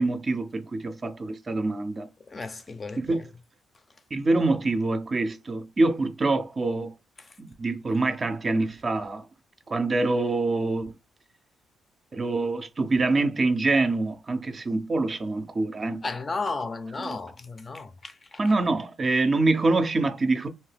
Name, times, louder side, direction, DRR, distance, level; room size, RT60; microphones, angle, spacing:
voice 1, 0.0-2.1 3.0-3.2 4.1-6.9 7.4-9.3 9.7-10.9 12.1-16.0 17.0-17.2 18.4-20.5, right 2 dB, 35° right, 0.4 m, -25 dB
voice 2, 2.3-3.3 7.2-7.3 16.0-18.4, left 3 dB, 35° left, 0.4 m, -34 dB
2.6 x 2.1 x 3.2 m
cardioid pair, 90°, 0 cm